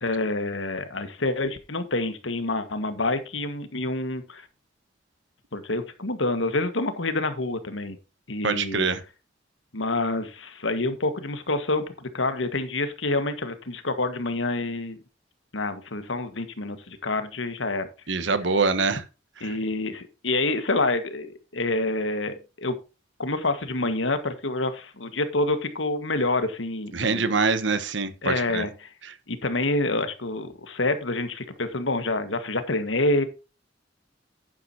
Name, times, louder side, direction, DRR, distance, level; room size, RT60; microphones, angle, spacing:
voice 1, 0.0-4.5 5.5-8.0 8.3-8.9 9.7-15.0 15.5-17.9 19.4-22.8 23.2-27.3 28.2-28.9 29.3-33.2, left 2 dB, 80° left, 1.7 m, -27 dB
voice 2, 8.4-9.0 18.1-19.0 26.9-28.6, right 4 dB, 70° right, 1.3 m, -24 dB
10.5 x 10.0 x 2.8 m
head